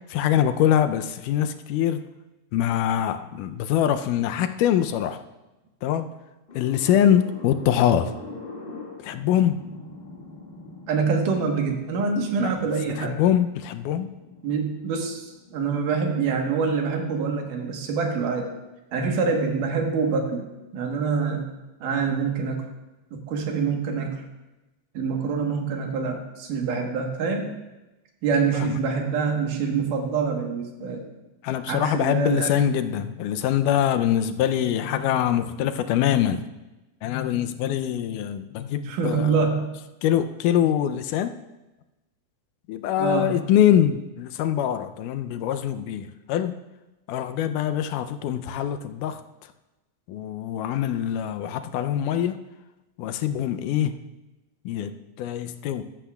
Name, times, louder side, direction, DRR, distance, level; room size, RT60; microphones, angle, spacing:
voice 1, 0.1-2.0 2.5-5.2 5.8-6.1 6.6-8.1 9.0-9.6 12.4-12.5 12.9-14.1 28.5-28.8 31.4-36.5 37.0-39.5 40.0-41.3 42.7-46.6 47.1-49.5 50.1-52.4 53.0-53.9 54.7-55.8, left 10 dB, 85° left, 9 dB, 2.2 m, -24 dB
sound 1, 6.5-16.8, left 2 dB, 35° left, 1.1 m, -44 dB
voice 2, 10.9-13.2 14.4-18.5 18.9-20.5 20.7-21.4 21.8-22.6 23.1-24.2 24.9-27.6 28.2-31.1 31.7-32.5 38.9-39.7 43.0-43.3, right 5 dB, 85° right, 3 dB, 2.9 m, -25 dB
13.5 x 13.5 x 2.3 m, 1.0 s
omnidirectional pair, 3.6 m